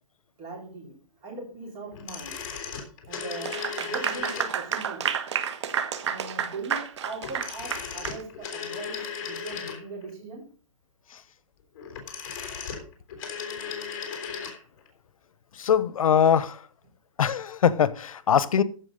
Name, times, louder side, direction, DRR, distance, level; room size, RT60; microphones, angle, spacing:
voice 1, 0.4-2.4 2.7-2.8 3.0-5.2 6.1-9.0 9.2-10.4, right 3 dB, 20° right, 4.2 m, -40 dB
sound 1, 1.9-4.8 7.2-10.1 11.7-14.6 14.9-15.0, left 6 dB, 35° left, 3.4 m, -36 dB
Clapping / Applause, 3.4-8.2, right 8 dB, 55° right, 1.4 m, -30 dB
voice 2, 15.6-16.6 17.2-18.6, left 8 dB, 85° left, 0.9 m, -22 dB
14.5 x 5.9 x 5.1 m
hypercardioid pair, 170°, 17 cm